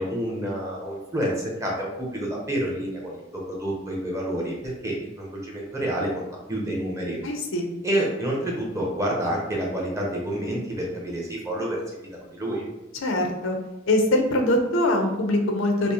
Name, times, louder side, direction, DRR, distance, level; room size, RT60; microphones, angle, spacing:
voice 1, 0.0-7.2 7.8-11.8 12.1-12.6, right 1 dB, 15° right, -3 dB, 0.8 m, -28 dB
voice 2, 7.2-7.7 13.0-13.6 13.9-15.9, left 1 dB, 80° left, 3 dB, 0.6 m, -23 dB
5.2 x 2.1 x 2.8 m, 0.97 s
head